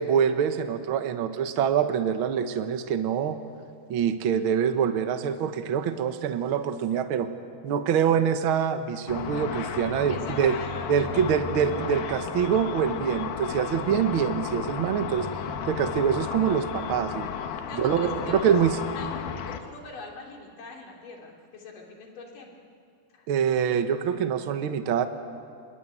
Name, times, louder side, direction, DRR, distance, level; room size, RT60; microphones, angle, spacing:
voice 1, 0.0-3.4 3.9-7.3 7.6-10.5 10.9-15.3 15.6-17.3 17.7-18.8 23.3-25.0, right 8 dB, 85° right, 8 dB, 1.1 m, -25 dB
Car / Traffic noise roadway noise / Engine, 9.1-19.6, left 7 dB, 85° left, 3.2 m, -33 dB
voice 2, 9.9-11.2 17.7-18.5 18.8-19.1 19.5-22.5 23.1-23.3, left 3 dB, 60° left, 0 dB, 4.8 m, -43 dB
26.0 x 22.0 x 9.2 m, 2.3 s
omnidirectional pair, 4.2 m